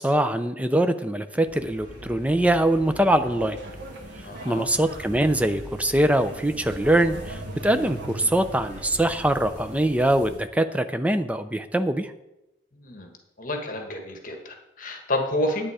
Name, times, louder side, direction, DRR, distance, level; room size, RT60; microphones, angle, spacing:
voice 1, 0.0-3.6 4.4-12.1, right 1 dB, 10° right, 9 dB, 0.6 m, -23 dB
sound 1, 1.4-10.4, equal, 45° right, 3.0 m, -41 dB
sound 2, 3.2-8.5, right 2 dB, 75° right, 1.5 m, -43 dB
voice 2, 4.2-4.6 12.7-13.1 13.4-15.7, left 1 dB, 50° left, 3 dB, 1.5 m, -29 dB
10.5 x 8.9 x 4.9 m, 0.91 s
head